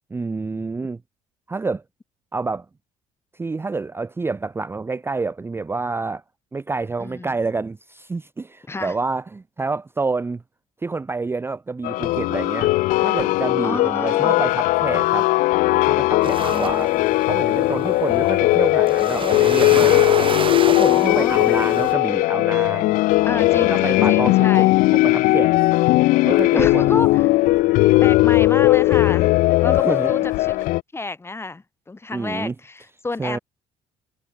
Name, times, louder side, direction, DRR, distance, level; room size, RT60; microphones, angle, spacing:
voice 1, 0.1-1.0 1.5-1.8 2.3-2.7 3.3-6.2 6.5-10.4 10.8-12.7 13.0-15.3 15.7-16.9 17.3-20.0 20.7-23.0 23.7-24.7 24.9-25.5 26.2-27.0 29.7-30.1 32.1-32.5 33.2-33.4, right 3 dB, 15° right, 0.5 m, -28 dB
voice 2, 7.0-7.3 8.7-8.9 13.6-14.4 16.5-17.0 20.9-21.4 23.3-24.7 26.5-27.3 27.7-29.4 29.6-30.6 30.9-33.4, left 3 dB, 20° left, 1.1 m, -30 dB
sound 1, 11.8-30.8, left 19 dB, 70° left, 0.4 m, -18 dB
sound 2, 16.2-21.9, right 6 dB, 40° right, 2.2 m, -30 dB
supercardioid pair, 70°, 14 cm